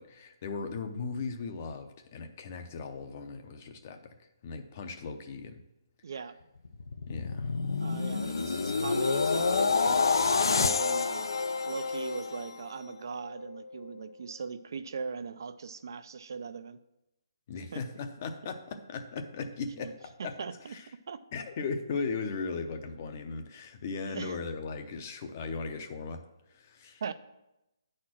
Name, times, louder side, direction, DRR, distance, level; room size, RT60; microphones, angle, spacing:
voice 1, 0.0-5.6 7.1-7.5 17.5-20.4 20.6-20.9 21.3-27.0, left 4 dB, 30° left, 7 dB, 0.6 m, -38 dB
voice 2, 6.0-6.4 7.8-11.3 11.7-16.8 17.7-17.8 19.8-19.9 20.4-21.2 24.1-24.3 27.0-27.1, right 5 dB, 55° right, 12 dB, 0.4 m, -40 dB
sound 1, 6.6-12.9 13.3-13.6, left 4 dB, 80° left, 0.5 m, -28 dB
9.4 x 4.3 x 6.1 m, 0.93 s
hypercardioid pair, 170°, 2 cm